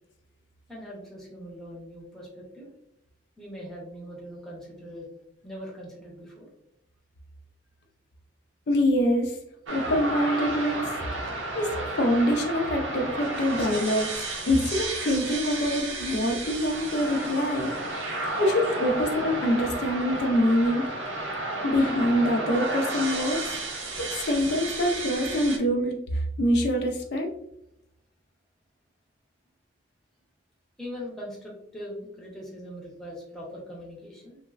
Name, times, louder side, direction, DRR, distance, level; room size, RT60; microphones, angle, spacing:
voice 1, 0.7-2.7 3.4-5.1 5.4-6.5 30.8-34.4, equal, ahead, -4 dB, 0.6 m, -41 dB
voice 2, 8.7-9.4 9.7-10.9 11.3-17.7 18.4-20.9 21.6-23.4 24.0-27.3, equal, 60° left, 2 dB, 0.4 m, -25 dB
sound 1, 9.7-25.6, right 2 dB, 85° right, 0.6 m, -32 dB
3.1 x 2.0 x 2.3 m, 0.78 s
head